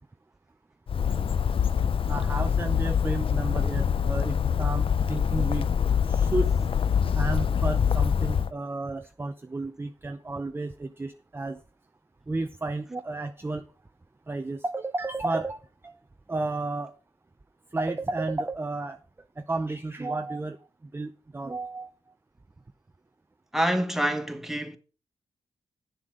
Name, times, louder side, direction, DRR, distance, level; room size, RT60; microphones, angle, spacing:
Bird, 0.9-8.5, left 7 dB, 55° left, 0.6 m, -25 dB
voice 1, 2.1-5.7 6.0-6.6 7.1-11.6 12.3-13.6 14.3-16.0 16.3-16.9 17.7-19.0 19.4-21.9, right 2 dB, 20° right, 0.6 m, -32 dB
voice 2, 23.5-24.8, equal, 5° right, 1.5 m, -26 dB
9.5 x 7.2 x 5.0 m
cardioid pair, 50°, 11 cm